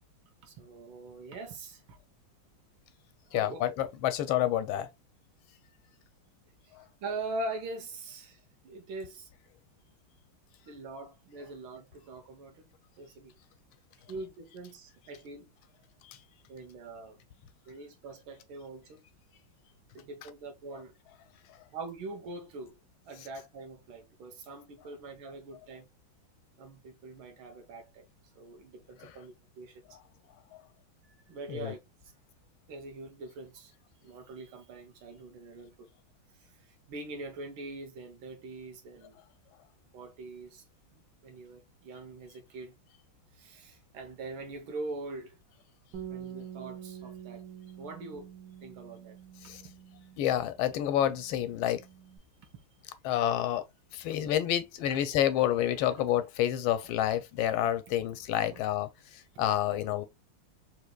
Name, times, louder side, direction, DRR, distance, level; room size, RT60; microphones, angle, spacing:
voice 1, 0.4-2.0 3.3-3.6 7.0-9.3 10.7-12.7 13.0-13.3 14.1-15.5 16.5-17.2 17.7-19.1 20.0-20.9 21.7-22.8 23.1-25.9 26.6-28.1 28.4-29.8 31.3-31.8 32.7-33.7 34.0-35.9 36.4-36.5 36.9-39.2 39.9-40.6 40.9-42.8 43.4-45.4 46.1-47.4 47.8-48.3 48.6-49.2 52.4-52.7 54.3-54.4 54.9-55.0 55.4-55.5 55.8-56.3 56.8-56.9 57.4-57.5 58.0-58.6 59.7-60.0, right 2 dB, 80° right, 1.8 m, -43 dB
voice 2, 3.3-4.9 16.1-16.2 30.5-30.6 31.5-31.7 49.5-49.6 50.2-51.8 53.0-53.6 53.9-58.9 59.4-60.1, left 12 dB, 85° left, 1.4 m, -28 dB
Bass guitar, 45.9-52.2, right 9 dB, 60° right, 1.4 m, -47 dB
3.8 x 3.0 x 2.2 m
omnidirectional pair, 2.2 m